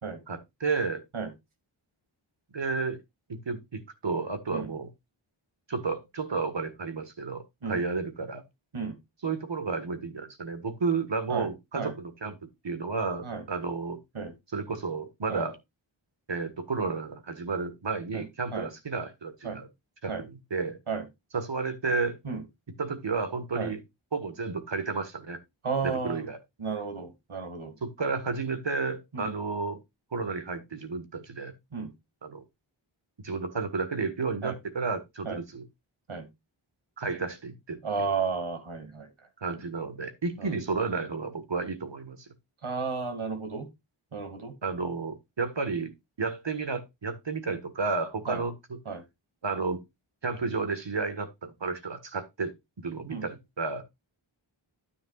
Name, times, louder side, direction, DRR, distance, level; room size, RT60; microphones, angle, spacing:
voice 1, 0.3-1.0 2.5-3.0 3.3-4.9 5.7-8.4 9.2-12.4 12.6-14.0 14.5-15.6 16.3-19.7 20.0-20.8 21.3-22.2 22.8-23.8 24.1-25.4 25.8-26.4 27.8-29.8 30.1-31.5 32.2-32.4 33.2-35.6 37.0-37.8 39.4-42.2 44.6-45.9 46.2-48.8 49.4-49.8 50.2-53.8, right 4 dB, 60° right, 1.6 m, -32 dB
voice 2, 25.6-26.3 26.6-27.7 29.1-29.3 31.7-31.9 34.4-34.6 35.2-35.4 36.1-36.3 37.8-39.1 40.4-40.6 42.6-43.7 44.1-44.5 48.3-48.4 48.9-49.0 53.1-53.2, right 5 dB, 80° right, 2.1 m, -33 dB
9.9 x 8.9 x 2.4 m
wide cardioid pair, 50°, 48 cm